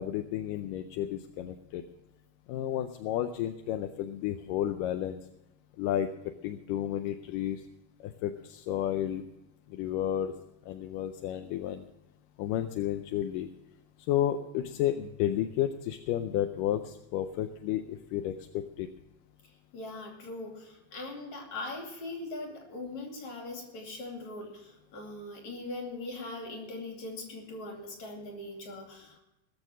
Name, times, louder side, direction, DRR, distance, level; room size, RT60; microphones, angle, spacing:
voice 1, 0.0-1.9 2.5-5.2 5.8-6.1 6.4-7.6 8.0-9.2 9.7-10.3 10.6-11.9 12.4-13.5 14.1-18.9, left 11 dB, 80° left, 7 dB, 2.1 m, -32 dB
voice 2, 19.7-29.2, left 2 dB, 55° left, 1 dB, 3.8 m, -41 dB
20.0 x 6.9 x 6.1 m, 0.95 s
omnidirectional pair, 4.1 m